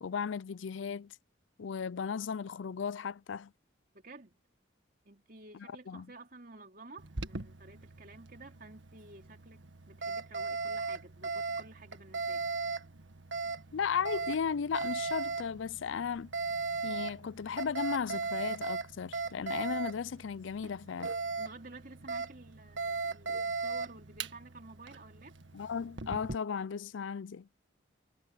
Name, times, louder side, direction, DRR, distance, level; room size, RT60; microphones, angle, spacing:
voice 1, 0.0-1.1 1.6-3.5 5.5-6.1 13.7-16.3 16.8-21.1 25.5-27.5, left 6 dB, 80° left, 0.4 m, -35 dB
voice 2, 3.9-4.4 5.1-9.6 9.9-12.5 21.4-25.4, right 2 dB, 45° right, 3.6 m, -52 dB
Alarm, 7.0-26.4, right 4 dB, 75° right, 1.7 m, -38 dB
head